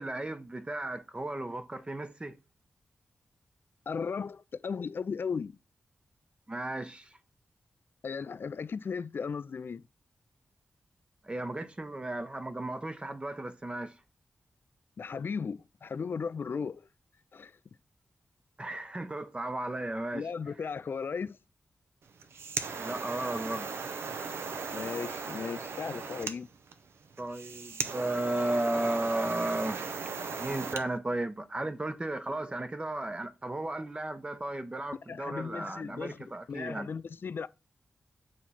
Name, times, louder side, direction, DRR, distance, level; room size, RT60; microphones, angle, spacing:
voice 1, 0.0-2.4 6.5-7.2 11.2-14.0 18.6-20.3 22.8-23.7 27.2-29.8 30.4-36.9, right 1 dB, 25° right, 0.7 m, -34 dB
voice 2, 3.9-5.5 8.0-9.8 15.0-16.9 17.3-17.5 20.1-21.4 24.7-26.5 35.1-36.2 36.5-37.5, left 5 dB, 60° left, 0.4 m, -36 dB
sound 1, 22.1-30.9, right 5 dB, 85° right, 0.7 m, -37 dB
8.9 x 3.0 x 4.2 m
cardioid pair, 55°, 4 cm